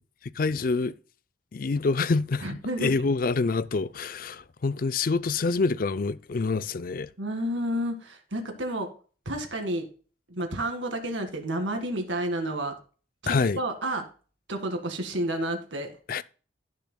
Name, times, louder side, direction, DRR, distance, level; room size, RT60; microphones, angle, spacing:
voice 1, 0.4-0.9 1.5-7.1 13.3-13.6 16.1-16.2, left 4 dB, 45° left, 0.4 m, -26 dB
voice 2, 2.4-2.9 7.2-8.9 9.3-9.9 10.3-12.8 13.2-14.1 14.5-15.9, right 1 dB, 75° right, 2.0 m, -30 dB
16.0 x 6.8 x 2.3 m
head